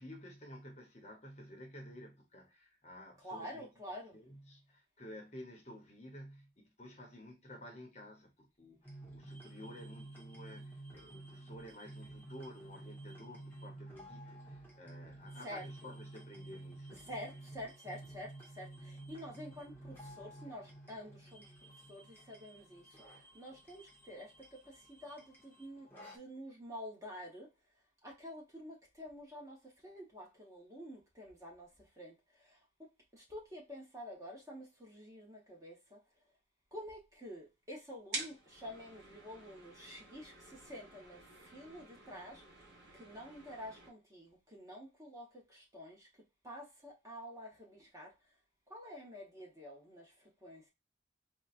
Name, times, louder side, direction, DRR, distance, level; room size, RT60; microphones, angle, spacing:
voice 1, 0.0-3.7 4.1-17.1, left 1 dB, 35° left, 0.9 m, -52 dB
voice 2, 3.2-4.2 15.4-15.9 17.1-21.5 21.9-27.5 28.0-36.0 36.7-46.1 46.4-48.1 48.7-50.7, equal, 15° right, 1.0 m, -49 dB
sound 1, 8.8-26.2, right 1 dB, 10° left, 0.9 m, -52 dB
sound 2, 38.1-43.9, right 2 dB, 65° right, 1.3 m, -49 dB
4.1 x 2.2 x 2.4 m
head